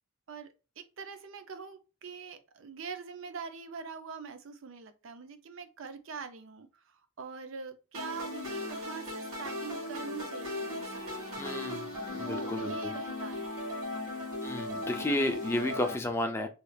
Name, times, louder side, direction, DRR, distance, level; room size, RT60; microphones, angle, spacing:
voice 1, 0.8-6.7 7.2-10.9 11.1-11.7 12.2-13.6, right 5 dB, 60° right, 0.5 m, -43 dB
sound 1, 7.9-15.9, left 1 dB, 80° right, 1.6 m, -37 dB
voice 2, 11.4-12.9 14.4-16.5, left 1 dB, 10° left, 0.3 m, -32 dB
3.1 x 2.3 x 3.2 m
head